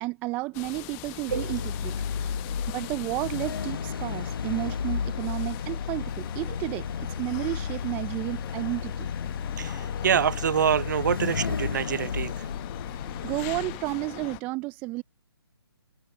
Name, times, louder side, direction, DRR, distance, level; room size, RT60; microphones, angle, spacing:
voice 1, 0.0-2.0 2.7-9.1 13.2-15.0, right 22 dB, 10° right, 0.4 m, -32 dB
sound 1, 0.5-14.4, left 29 dB, 20° left, 0.9 m, -42 dB
sound 2, 1.3-13.8, left 6 dB, 55° left, 1.1 m, -33 dB
voice 2, 9.6-12.5, right 8 dB, 45° right, 0.9 m, -26 dB
figure-of-eight pair, 145°, 14 cm